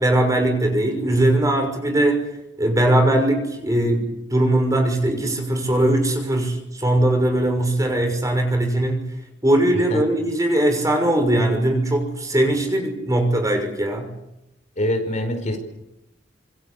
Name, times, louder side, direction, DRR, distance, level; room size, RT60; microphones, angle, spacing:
voice 1, 0.0-2.2 2.6-9.1 9.4-14.1, right 1 dB, 20° right, 4 dB, 6.1 m, -20 dB
voice 2, 14.8-15.6, left 1 dB, 40° left, 6 dB, 5.1 m, -24 dB
27.0 x 24.0 x 8.4 m, 0.89 s
head